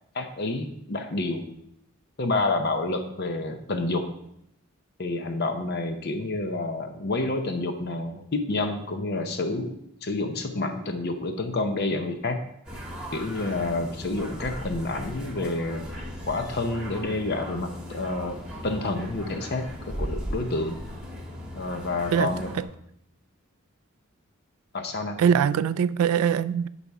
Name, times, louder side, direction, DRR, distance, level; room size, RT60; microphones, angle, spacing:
voice 1, 0.1-1.4 2.2-4.1 5.0-9.7 10.0-12.4 13.1-15.9 16.3-18.4 18.6-20.8 21.5-22.5 24.7-25.2, left 2 dB, 45° left, 0.7 m, -29 dB
sound 1, 12.7-22.6, equal, 5° right, 1.4 m, -37 dB
voice 2, 22.1-22.7 25.2-26.7, right 8 dB, 85° right, 0.3 m, -23 dB
10.0 x 4.2 x 4.7 m
head